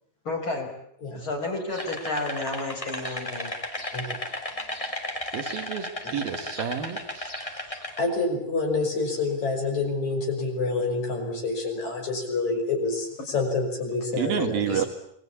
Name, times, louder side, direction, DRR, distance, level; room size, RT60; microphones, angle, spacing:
voice 1, 0.2-0.7 1.1-3.5, left 2 dB, 30° left, 2 dB, 5.9 m, -31 dB
sound 1, 1.7-8.0, left 1 dB, 10° left, 3.0 m, -34 dB
voice 2, 5.3-7.3 14.1-14.8, right 8 dB, 70° right, 7 dB, 3.7 m, -29 dB
voice 3, 8.0-14.9, left 3 dB, 45° left, 2 dB, 7.1 m, -27 dB
27.5 x 22.0 x 8.5 m, 0.72 s
omnidirectional pair, 4.4 m